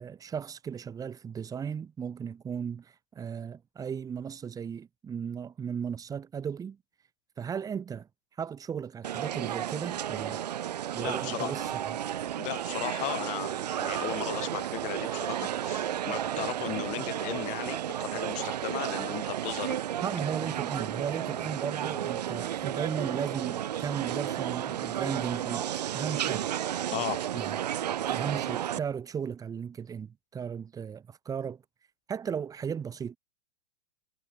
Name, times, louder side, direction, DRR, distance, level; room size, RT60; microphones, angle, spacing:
voice 1, 0.0-6.8 7.4-8.1 8.4-10.5 10.9-11.7 20.0-25.7 25.9-26.5 27.3-27.5 28.1-31.6 32.1-33.2, right 7 dB, 15° right, 4.5 m, -36 dB
sound 1, 9.0-28.8, right 11 dB, 80° right, 3.0 m, -33 dB
voice 2, 11.0-11.7 12.4-19.8 26.9-27.2, left 21 dB, 35° left, 5.1 m, -36 dB
supercardioid pair, 145°, 20 cm